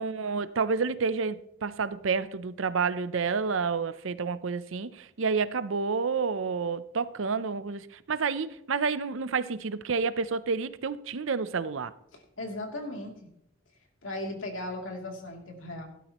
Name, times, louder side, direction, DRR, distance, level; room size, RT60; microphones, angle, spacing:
voice 1, 0.0-11.9, right 5 dB, 70° right, 0.6 m, -29 dB
voice 2, 12.1-13.3 14.0-15.8, left 1 dB, 70° left, 2.9 m, -37 dB
17.0 x 12.0 x 3.0 m
head